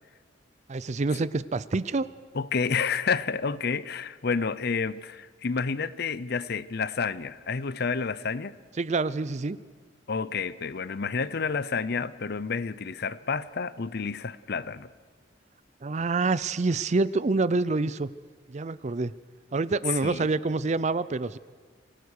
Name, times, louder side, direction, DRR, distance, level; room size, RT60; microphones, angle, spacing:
voice 1, 0.7-2.1 8.8-9.6 15.8-18.1 18.5-19.1 19.5-21.4, right 3 dB, 35° right, 17 dB, 0.5 m, -27 dB
voice 2, 2.3-8.6 10.1-14.9 20.0-20.3, left 5 dB, 55° left, 17 dB, 0.6 m, -30 dB
25.5 x 17.0 x 6.5 m, 1.5 s
head